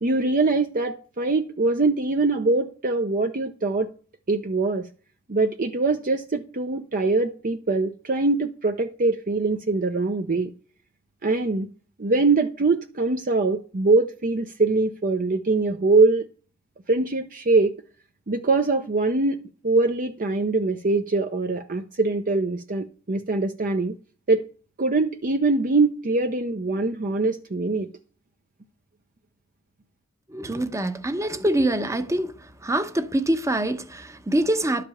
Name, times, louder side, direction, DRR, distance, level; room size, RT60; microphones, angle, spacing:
voice 1, 0.0-3.9 4.3-4.9 5.3-10.5 11.2-11.7 12.0-16.2 16.9-17.8 18.3-23.9 24.3-24.4 24.8-27.9, right 3 dB, 40° right, 0.7 m, -23 dB
voice 2, 30.3-32.3 32.6-34.8, right 1 dB, 15° right, 0.9 m, -24 dB
12.0 x 5.1 x 7.1 m
head